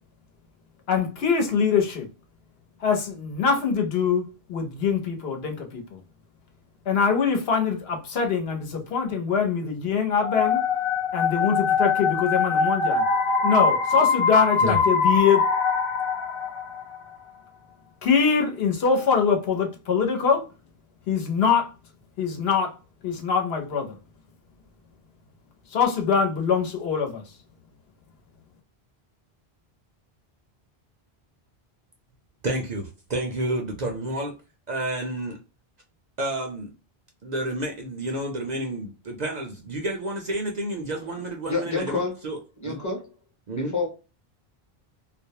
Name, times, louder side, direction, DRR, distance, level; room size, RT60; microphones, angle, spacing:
voice 1, 0.9-2.1 2.8-6.0 6.9-10.6 11.1-13.0 13.4-15.4 18.0-20.4 21.1-21.7 22.2-22.7 23.0-24.0 25.7-27.2, left 6 dB, 75° left, 1.0 m, -23 dB
sound 1, 10.2-17.0, left 5 dB, 55° left, 0.3 m, -23 dB
voice 2, 32.4-34.3 34.7-35.4 36.2-36.7 37.2-42.4 42.7-42.8 43.5-43.7, right 1 dB, 55° right, 0.5 m, -30 dB
voice 3, 41.4-42.1 42.6-43.0 43.5-43.9, left 3 dB, 20° left, 0.7 m, -27 dB
2.4 x 2.0 x 2.7 m
omnidirectional pair, 1.1 m